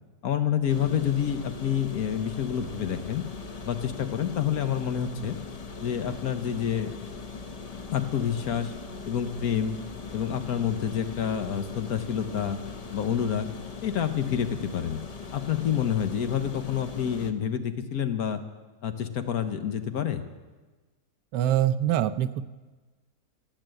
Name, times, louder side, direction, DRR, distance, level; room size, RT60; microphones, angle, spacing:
voice 1, 0.2-3.2 3.6-5.4 5.8-6.9 7.9-8.7 9.0-9.8 10.1-12.6 12.9-13.5 13.8-15.0 15.3-18.4 18.8-20.2, left 9 dB, 65° left, 9 dB, 1.3 m, -28 dB
sound 1, 0.7-17.3, left 4 dB, 90° left, 0.3 m, -40 dB
voice 2, 21.3-22.4, right 11 dB, 85° right, 13 dB, 1.2 m, -24 dB
16.5 x 8.9 x 7.7 m, 1.3 s
omnidirectional pair, 1.8 m